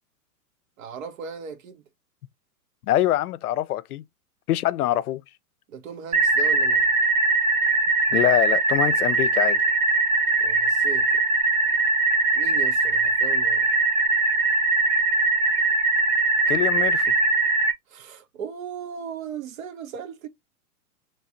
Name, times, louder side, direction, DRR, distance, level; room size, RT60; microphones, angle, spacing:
voice 1, 0.8-1.8 5.7-6.9 10.4-11.2 12.4-13.7 17.9-20.3, right 7 dB, 60° right, 1.1 m, -37 dB
voice 2, 2.9-4.0 4.5-5.2 8.1-9.6 16.5-17.1, left 14 dB, 75° left, 0.6 m, -24 dB
sound 1, 6.1-17.7, right 3 dB, 15° right, 0.4 m, -21 dB
3.2 x 2.6 x 4.3 m
hypercardioid pair, 120°, 45 cm